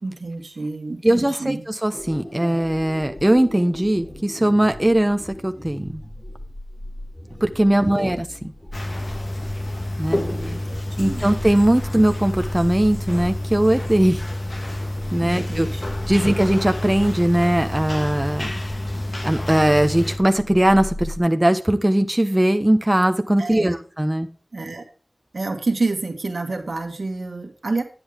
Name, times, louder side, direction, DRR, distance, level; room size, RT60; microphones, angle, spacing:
voice 1, 0.0-1.7 7.7-8.2 10.1-11.3 15.2-15.8 23.4-23.8 24.5-24.9 25.3-27.8, right 3 dB, 75° right, 6 dB, 1.8 m, -29 dB
voice 2, 1.0-6.0 7.4-8.3 10.0-10.2 11.0-14.2 15.1-15.7 16.1-18.5 19.2-24.3, right 1 dB, 20° right, 7 dB, 1.0 m, -19 dB
sound 1, 1.9-21.2, left 1 dB, 35° left, 4.2 m, -39 dB
sound 2, 8.7-20.2, left 1 dB, 50° left, 2.1 m, -28 dB
10.5 x 7.9 x 3.7 m, 0.38 s
wide cardioid pair, 45°, 0 cm